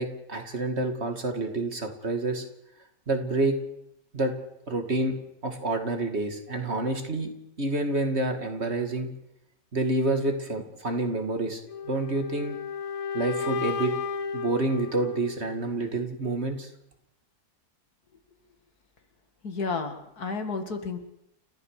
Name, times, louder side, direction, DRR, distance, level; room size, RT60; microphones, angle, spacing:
voice 1, 0.0-2.4 3.1-3.6 4.1-4.3 4.7-5.2 5.4-7.3 7.6-9.1 9.7-12.6 13.1-13.9 14.3-16.7, right 2 dB, 45° right, 6 dB, 2.4 m, -28 dB
sound 1, 11.7-15.7, left 6 dB, 65° left, 1.4 m, -33 dB
voice 2, 19.4-21.0, left 4 dB, 85° left, 7 dB, 2.6 m, -31 dB
30.0 x 14.0 x 6.6 m, 0.81 s
omnidirectional pair, 1.6 m